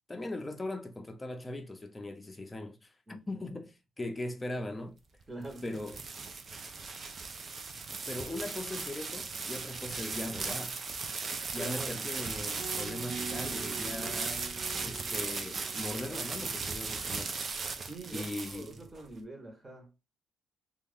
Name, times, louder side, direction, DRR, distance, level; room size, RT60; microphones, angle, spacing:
voice 1, 0.1-5.0 5.6-6.0 8.1-10.8 11.5-14.4 14.8-17.3 18.1-18.8, left 1 dB, 20° left, 0.6 m, -39 dB
voice 2, 3.1-3.4 5.3-5.8 11.5-12.1 17.9-20.0, right 2 dB, 20° right, 1.1 m, -44 dB
sound 1, 5.2-19.0, right 4 dB, 45° right, 0.5 m, -37 dB
sound 2, 12.6-16.7, right 5 dB, 65° right, 0.9 m, -45 dB
2.9 x 2.4 x 3.5 m
cardioid pair, 90°, 0 cm